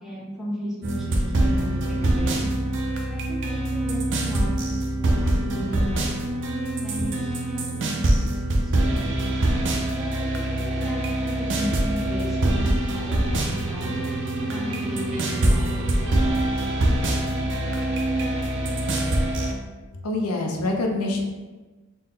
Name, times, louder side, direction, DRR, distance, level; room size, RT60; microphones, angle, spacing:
voice 1, 0.0-2.5 3.1-6.3 6.8-9.3 9.9-13.9 14.5-16.2 18.1-18.2, equal, ahead, -4 dB, 0.7 m, -35 dB
sound 1, 0.8-19.5, right 1 dB, 55° right, 0.5 m, -24 dB
sound 2, 6.9-7.5 9.3-9.8 10.1-11.1 11.3-11.8 12.4-13.9, left 1 dB, 35° left, 0.4 m, -39 dB
voice 2, 20.0-21.2, left 2 dB, 85° left, 2 dB, 0.6 m, -25 dB
4.1 x 2.1 x 3.6 m, 1.2 s
head